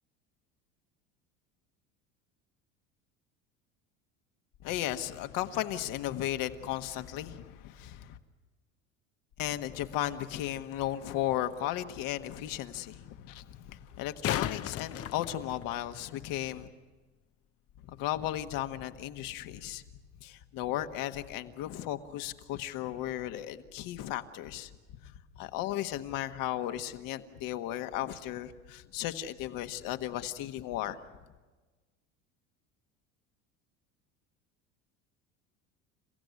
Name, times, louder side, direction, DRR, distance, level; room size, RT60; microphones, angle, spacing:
voice 1, 4.6-8.2 9.4-16.7 17.9-19.8 20.2-24.7 25.3-31.0, left 13 dB, 60° left, 8 dB, 1.6 m, -35 dB
sound 1, 11.0-11.1 13.9-16.0 18.9-19.0, left 11 dB, 40° left, 0.8 m, -35 dB
29.5 x 15.5 x 9.6 m, 1.3 s
hypercardioid pair, 85°, 37 cm